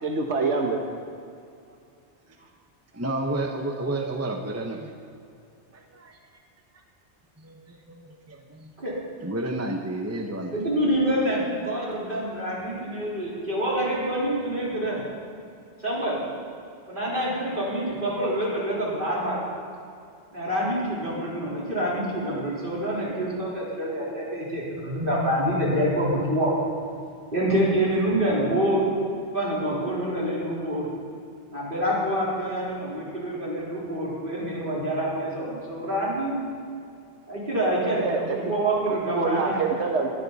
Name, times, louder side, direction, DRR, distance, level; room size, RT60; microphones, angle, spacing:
voice 1, 0.0-0.8 38.0-38.4 39.1-40.1, right 4 dB, 85° right, 2 dB, 1.5 m, -25 dB
voice 2, 2.9-4.9 5.7-6.2 7.4-8.7 9.2-10.9, right 2 dB, 15° right, 3 dB, 1.0 m, -31 dB
voice 3, 10.5-15.0 15.8-16.2 16.9-19.5 20.3-26.6 27.3-28.9 29.3-30.9 31.5-36.3 37.3-39.6, right 1 dB, 50° right, -6 dB, 4.3 m, -26 dB
21.0 x 14.5 x 4.2 m, 2.4 s
omnidirectional pair, 1.1 m